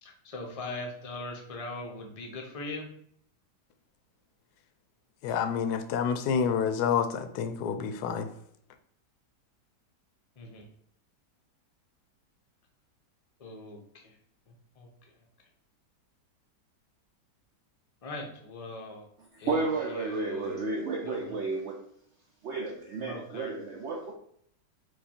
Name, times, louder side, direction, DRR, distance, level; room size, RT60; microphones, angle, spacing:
voice 1, 0.0-2.9 10.4-10.6 13.4-14.2 14.5-14.9 18.0-19.0 19.4-20.6 21.0-21.4 23.0-23.5, left 2 dB, 45° left, 1 dB, 0.4 m, -41 dB
voice 2, 5.2-8.3, left 7 dB, 75° left, 8 dB, 1.0 m, -28 dB
voice 3, 19.5-21.8 22.4-24.1, right 3 dB, 85° right, 1 dB, 0.6 m, -32 dB
4.9 x 2.3 x 4.3 m, 0.66 s
omnidirectional pair, 1.8 m